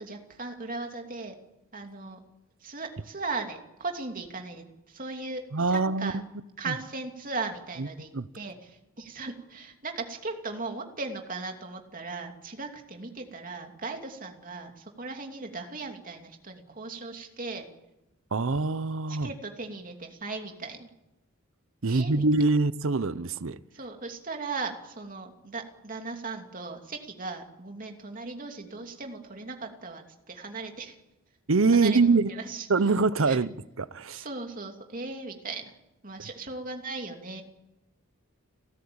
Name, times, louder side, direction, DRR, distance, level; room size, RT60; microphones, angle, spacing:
voice 1, 0.0-1.4 1.7-2.2 2.6-6.2 6.6-17.7 19.1-20.9 21.8-22.2 23.7-30.9 31.7-32.0 32.3-32.7 33.3-33.4 34.1-35.6 36.0-37.4, right 3 dB, 40° right, 2.8 m, -37 dB
voice 2, 5.5-6.2 6.7-6.8 7.8-7.9 8.1-8.3 18.3-19.3 21.8-23.6 31.5-32.3 32.7-34.2, right 3 dB, 65° right, 0.7 m, -24 dB
30.0 x 13.5 x 8.7 m
head